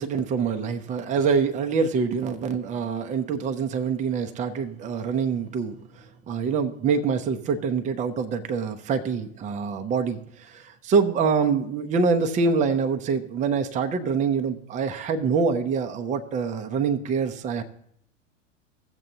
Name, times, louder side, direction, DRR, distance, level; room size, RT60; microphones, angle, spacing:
voice 1, 0.0-17.6, right 5 dB, 20° right, 7 dB, 0.6 m, -25 dB
16.5 x 7.6 x 2.7 m, 0.68 s
hypercardioid pair, 105°, 39 cm